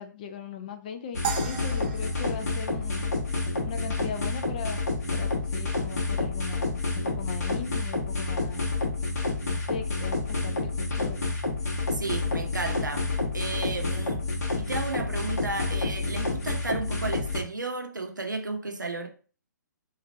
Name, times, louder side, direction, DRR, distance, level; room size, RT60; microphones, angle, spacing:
voice 1, 0.0-3.1 3.6-4.8 5.1-8.7 9.5-11.2, left 7 dB, 25° left, 0.3 m, -39 dB
sound 1, 1.1-17.4, left 3 dB, 55° left, 1.2 m, -29 dB
sound 2, 1.2-3.6, right 7 dB, 30° right, 0.6 m, -37 dB
voice 2, 11.9-13.1 13.3-14.3 14.5-19.1, right 3 dB, 75° right, 0.8 m, -33 dB
3.1 x 2.4 x 4.1 m
figure-of-eight pair, 130°, 10 cm